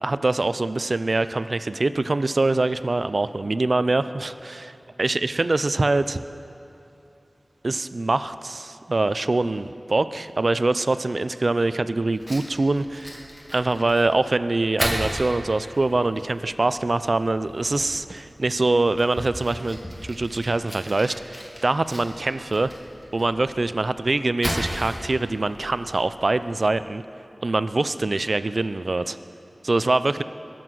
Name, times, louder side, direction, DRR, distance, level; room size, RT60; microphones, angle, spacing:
voice 1, 0.0-4.7 5.0-6.2 7.6-13.2 13.5-19.8 20.1-22.7 23.1-27.0 27.4-29.2 29.6-30.2, right 2 dB, 60° right, 13 dB, 0.4 m, -24 dB
Fire, 12.1-26.7, equal, 20° left, 2.5 m, -36 dB
21.5 x 7.8 x 6.2 m, 2.7 s
wide cardioid pair, 60°, 0 cm